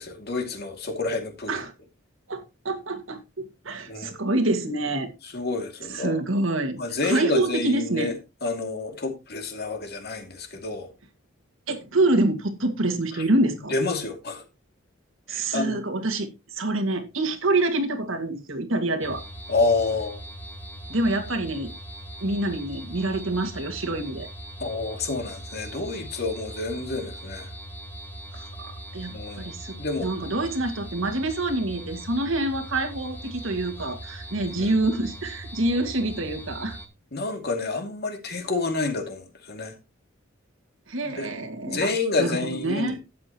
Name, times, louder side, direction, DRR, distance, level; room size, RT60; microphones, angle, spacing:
voice 1, 0.0-1.6 3.9-4.1 5.3-6.2 6.8-8.1 8.4-10.9 13.1-13.2 13.7-14.4 15.3-15.8 19.5-20.2 24.6-27.5 29.1-30.1 34.5-34.8 37.1-39.7 41.0-41.3 41.6-43.0, left 3 dB, 55° left, 2.5 m, -29 dB
voice 2, 2.3-5.1 5.9-6.8 7.0-8.1 11.7-13.8 15.3-19.2 20.9-21.7 22.2-24.3 28.3-36.8 40.9-41.9 42.2-43.0, right 2 dB, 75° right, 2.0 m, -26 dB
sound 1, 19.0-36.9, right 1 dB, 10° left, 1.9 m, -40 dB
12.5 x 8.7 x 3.0 m
head